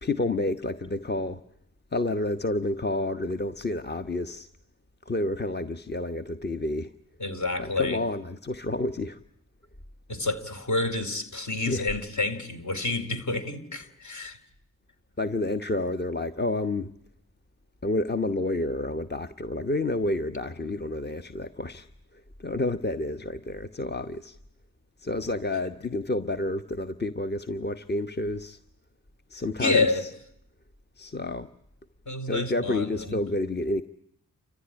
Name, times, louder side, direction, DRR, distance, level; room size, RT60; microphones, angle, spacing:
voice 1, 0.0-1.4 1.9-4.5 5.1-6.9 7.6-9.2 11.6-11.9 15.2-16.9 17.8-21.9 22.4-24.4 25.0-28.6 29.3-30.1 31.0-31.5 32.3-33.8, left 2 dB, 30° left, 1.1 m, -29 dB
voice 2, 7.2-8.0 10.1-14.4 29.6-30.0 32.1-33.2, left 3 dB, 50° left, 4.1 m, -28 dB
29.5 x 15.0 x 10.0 m
cardioid pair, 50°, 36 cm